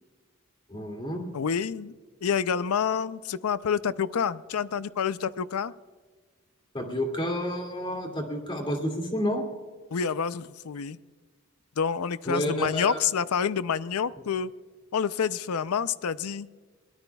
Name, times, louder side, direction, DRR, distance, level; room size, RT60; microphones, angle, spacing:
voice 1, 0.7-1.2 6.7-9.4 12.3-13.0, equal, 25° left, 2 dB, 2.4 m, -30 dB
voice 2, 1.3-1.9 2.2-5.7 9.9-11.0 11.8-14.5 14.9-16.5, left 7 dB, 90° left, 16 dB, 0.5 m, -28 dB
23.0 x 18.5 x 2.3 m, 1.5 s
head